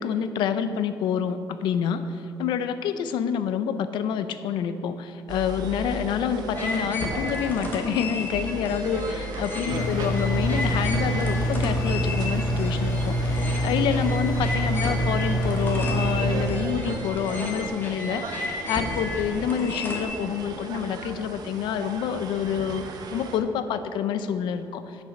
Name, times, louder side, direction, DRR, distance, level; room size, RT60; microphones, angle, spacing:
voice 1, 0.0-2.0 2.4-25.0, left 8 dB, 90° left, 11 dB, 0.5 m, -27 dB
sound 1, 5.3-23.4, right 4 dB, 60° right, 0.8 m, -37 dB
sound 2, 6.5-20.0, left 2 dB, 25° left, 1.2 m, -33 dB
Engine, 9.7-16.5, equal, 55° left, 1.7 m, -25 dB
8.1 x 6.8 x 5.9 m, 2.7 s
cardioid pair, 155°, 8 cm